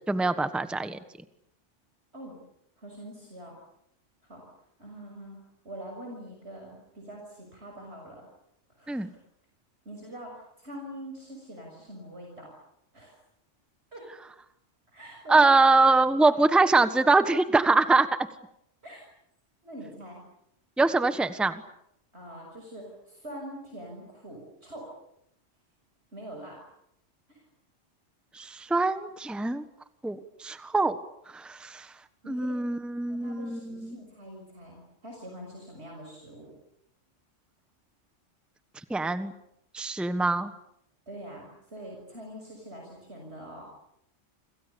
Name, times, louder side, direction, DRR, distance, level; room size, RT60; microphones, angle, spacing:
voice 1, 0.1-1.0 8.9-9.1 15.3-18.1 20.8-21.6 28.3-29.6 30.0-31.0 31.3-31.9 32.3-34.0 38.9-39.3 39.7-40.5, right 3 dB, ahead, 10 dB, 1.3 m, -23 dB
voice 2, 2.8-3.6 4.2-4.4 4.8-8.3 8.7-9.1 9.8-12.5 12.9-13.1 13.9-14.0 14.9-15.5 16.0-16.4 18.8-19.0 19.6-20.2 22.1-24.9 26.1-26.6 27.3-27.4 32.2-32.6 33.1-36.5 41.1-43.6, right 1 dB, 60° right, 1 dB, 6.5 m, -44 dB
29.5 x 27.0 x 7.0 m, 0.77 s
omnidirectional pair, 1.3 m